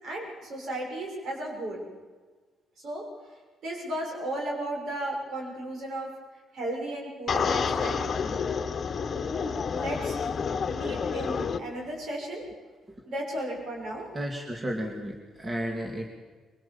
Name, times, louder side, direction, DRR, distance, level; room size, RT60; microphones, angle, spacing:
voice 1, 0.0-1.8 2.8-3.0 3.6-6.1 6.5-8.0 9.7-10.2 10.7-12.5 13.1-14.1, right 1 dB, 65° right, 0 dB, 6.7 m, -34 dB
sound 1, 7.3-11.6, left 6 dB, 45° left, 1.3 m, -29 dB
voice 2, 14.1-16.1, equal, 20° right, 1 dB, 2.7 m, -33 dB
23.0 x 19.0 x 7.3 m, 1.4 s
cardioid pair, 90°, 0 cm